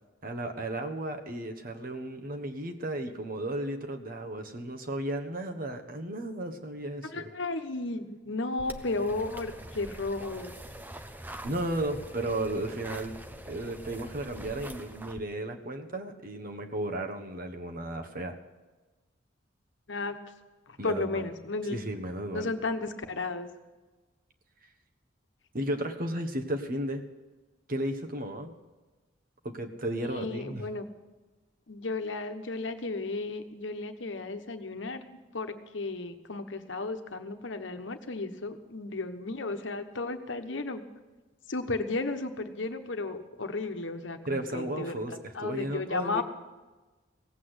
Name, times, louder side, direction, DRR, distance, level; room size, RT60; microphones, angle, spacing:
voice 1, 0.2-7.3 11.4-13.2 13.5-18.4 20.8-21.3 21.7-22.5 25.5-27.1 27.7-28.5 29.4-30.7 44.3-46.2, right 1 dB, 50° right, 6 dB, 1.3 m, -34 dB
voice 2, 7.1-10.5 19.9-20.2 20.7-21.8 22.3-23.5 30.0-30.9 31.7-40.8 41.5-46.2, left 3 dB, 75° left, 7 dB, 1.1 m, -34 dB
sound 1, 8.6-15.2, right 1 dB, 10° right, 0.7 m, -44 dB
17.5 x 8.4 x 8.0 m, 1.2 s
head